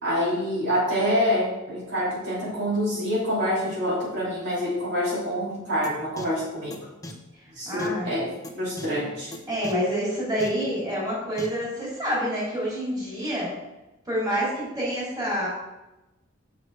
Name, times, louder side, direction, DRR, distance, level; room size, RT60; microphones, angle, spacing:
voice 1, 0.0-6.7 7.5-8.3 8.5-9.3, equal, 60° right, -7 dB, 3.0 m, -26 dB
sound 1, 5.8-5.9 6.2-6.3 6.7-6.8 7.0-7.1 7.8-7.9 8.4-8.5 8.8-8.9 9.3-9.4 9.6-9.7 10.4-10.5 11.4-11.5, left 1 dB, 15° left, 0.8 m, -37 dB
voice 2, 7.3-8.1 9.5-13.5 14.0-15.5, equal, 20° right, -7 dB, 3.0 m, -27 dB
6.6 x 6.2 x 4.7 m, 1.0 s
head